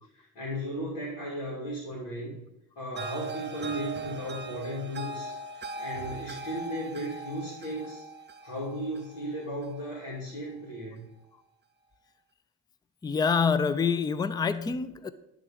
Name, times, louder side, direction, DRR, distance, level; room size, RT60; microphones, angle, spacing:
voice 1, 0.1-2.4 2.8-5.4 5.8-8.0 8.4-11.0, equal, 75° left, -5 dB, 2.6 m, -35 dB
sound 1, 3.0-10.1, right 3 dB, 25° right, 0.7 m, -39 dB
voice 2, 13.0-15.1, left 5 dB, 10° left, 15 dB, 0.4 m, -26 dB
11.0 x 3.8 x 5.1 m, 0.88 s
hypercardioid pair, 55°, 41 cm